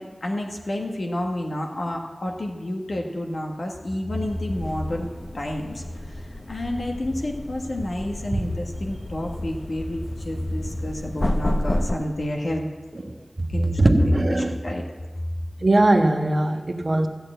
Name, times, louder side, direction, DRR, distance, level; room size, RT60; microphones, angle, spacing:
voice 1, 0.0-5.1 5.3-5.8 6.5-12.7 13.5-14.8, left 1 dB, 70° left, 0 dB, 1.4 m, -29 dB
sound 1, 4.2-11.9, left 1 dB, 30° left, 0.8 m, -31 dB
voice 2, 13.8-14.6 15.6-17.1, right 1 dB, 50° right, 4 dB, 1.3 m, -19 dB
14.0 x 6.6 x 9.1 m, 1.4 s
wide cardioid pair, 50°, 0 cm